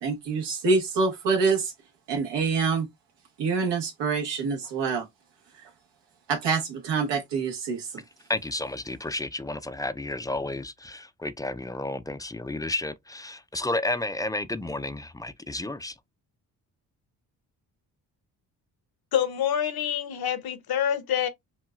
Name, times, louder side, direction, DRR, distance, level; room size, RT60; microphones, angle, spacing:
voice 1, 0.0-1.7 2.1-2.9 3.4-5.0 5.6-5.7 6.3-7.9, right 4 dB, 85° right, 1.3 m, -26 dB
voice 2, 8.3-15.9, left 2 dB, 10° left, 0.4 m, -32 dB
voice 3, 19.1-21.3, left 9 dB, 60° left, 0.9 m, -26 dB
6.0 x 2.3 x 2.4 m
supercardioid pair, 60°, 41 cm